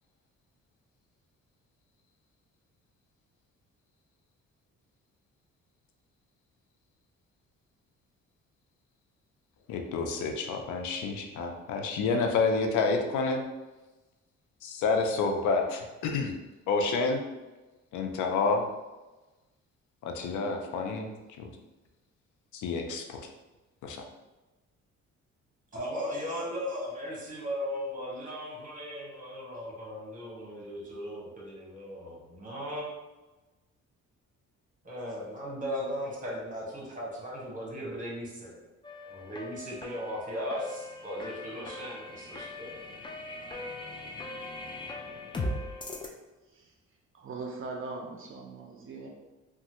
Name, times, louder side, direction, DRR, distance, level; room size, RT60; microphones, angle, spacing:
voice 1, 9.7-13.4 14.6-16.3 16.7-17.2 17.9-18.7 20.0-21.1 21.4-21.5 22.5-23.3 23.8-24.0, left 4 dB, 80° left, 3 dB, 0.5 m, -29 dB
voice 2, 25.7-32.9 34.8-38.6 39.1-42.8, equal, 25° right, -4 dB, 1.2 m, -37 dB
sound 1, 38.8-46.1, left 2 dB, 15° left, 0.3 m, -39 dB
voice 3, 47.1-49.1, right 3 dB, 45° right, 1 dB, 0.5 m, -40 dB
3.0 x 2.3 x 2.8 m, 1.1 s
cardioid pair, 90°, 30 cm